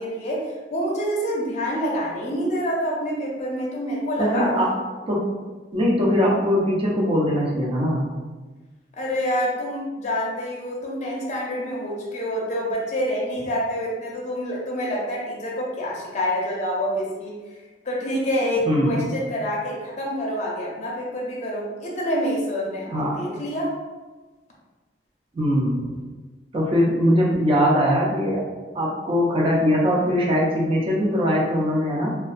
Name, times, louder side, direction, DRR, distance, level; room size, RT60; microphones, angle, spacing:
voice 1, 0.0-4.5 9.0-17.4 17.8-23.8, equal, 40° left, -4 dB, 0.5 m, -27 dB
voice 2, 4.2-4.7 5.1-5.2 5.7-8.1 18.7-19.2 22.9-23.2 25.3-26.0 26.5-28.4 28.7-32.1, equal, 30° right, -3 dB, 0.5 m, -21 dB
2.3 x 2.2 x 2.4 m, 1.3 s
head